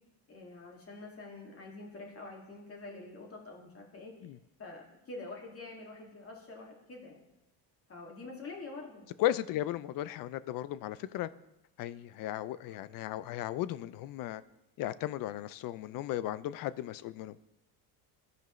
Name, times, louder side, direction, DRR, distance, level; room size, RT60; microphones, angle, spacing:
voice 1, 0.3-4.1 4.6-7.2 7.9-9.1 12.7-12.8, left 3 dB, 30° left, -1 dB, 2.2 m, -46 dB
voice 2, 9.2-11.3 11.8-14.4 14.8-17.3, left 13 dB, 50° left, 17 dB, 0.5 m, -35 dB
15.0 x 5.2 x 3.1 m, 0.92 s
cardioid pair, 110°, 44 cm